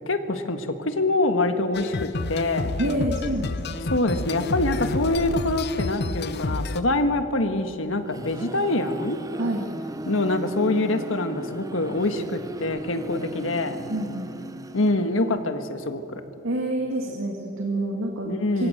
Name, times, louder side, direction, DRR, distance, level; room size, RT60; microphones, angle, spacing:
voice 1, 0.1-2.7 3.9-9.2 10.0-13.8 14.7-16.2 18.2-18.7, left 2 dB, 75° left, 7 dB, 1.6 m, -25 dB
sound 1, 1.7-6.8, left 3 dB, 55° left, 0.8 m, -29 dB
voice 2, 2.8-3.9 9.4-9.6 13.9-14.3 16.4-18.7, right 1 dB, 80° right, 1 dB, 2.2 m, -28 dB
sound 2, 7.8-15.5, right 1 dB, 20° right, 0.8 m, -37 dB
26.0 x 23.5 x 6.7 m, 2.8 s
head